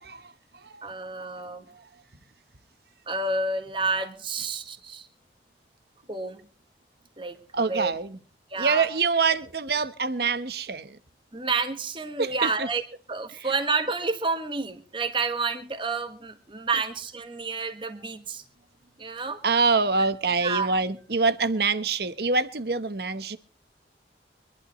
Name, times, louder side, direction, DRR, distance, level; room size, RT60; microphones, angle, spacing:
voice 1, 0.0-0.9 1.3-1.4 1.7-1.9 7.5-8.2 8.6-11.0 12.2-12.7 13.4-13.5 19.4-23.4, right 4 dB, 60° right, 1.1 m, -26 dB
voice 2, 0.8-1.6 3.1-5.1 6.1-6.4 7.2-7.4 7.7-7.9 8.5-8.9 11.3-12.8 13.1-18.4 19.0-19.4 20.4-20.7, right 4 dB, 30° right, 1.4 m, -29 dB
25.0 x 11.5 x 3.0 m
head